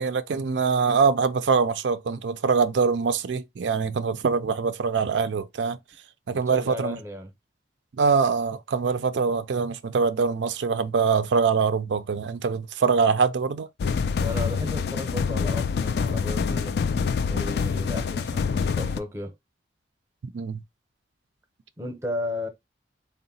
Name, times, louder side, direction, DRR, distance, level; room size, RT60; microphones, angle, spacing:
voice 1, 0.0-5.8 6.3-7.0 7.9-13.7 20.3-20.6, right 5 dB, 75° right, 0.4 m, -23 dB
voice 2, 6.3-7.3 14.2-16.8 17.3-19.3 21.8-22.5, left 1 dB, 15° right, 0.7 m, -34 dB
sound 1, 13.8-19.0, left 5 dB, 60° left, 0.3 m, -26 dB
3.8 x 2.1 x 4.0 m
head